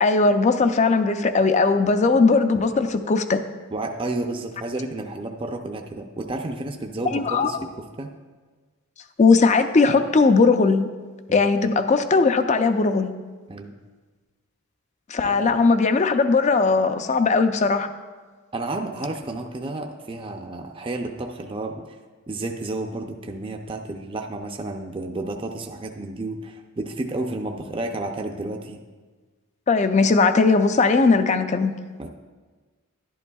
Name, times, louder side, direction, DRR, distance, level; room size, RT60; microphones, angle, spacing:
voice 1, 0.0-3.4 7.1-7.5 9.2-10.9 11.3-13.1 15.1-17.9 29.7-31.7, left 4 dB, 35° left, 9 dB, 0.4 m, -19 dB
voice 2, 3.7-7.7 8.0-8.1 11.3-11.5 13.5-13.7 15.2-15.5 18.5-22.0 22.3-28.8 32.0-32.1, right 2 dB, 25° right, 3 dB, 0.5 m, -31 dB
11.5 x 11.0 x 2.3 m, 1.4 s
head